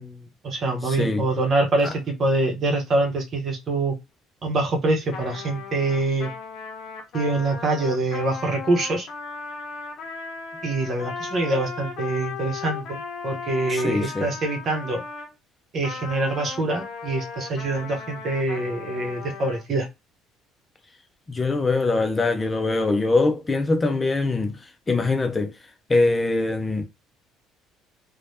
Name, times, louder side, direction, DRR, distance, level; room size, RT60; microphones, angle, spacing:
voice 1, 0.0-4.0 4.4-6.3 7.1-9.1 10.6-15.0 15.7-19.9, right 2 dB, 50° right, 1.1 m, -25 dB
voice 2, 0.8-1.3 1.8-1.9 13.7-14.3 21.3-24.6 24.9-25.5 25.9-26.8, left 3 dB, 25° left, 0.6 m, -23 dB
Trumpet, 5.1-15.3 15.8-19.6, left 5 dB, 60° left, 0.7 m, -36 dB
3.2 x 2.3 x 2.7 m
hypercardioid pair, 65°, 0 cm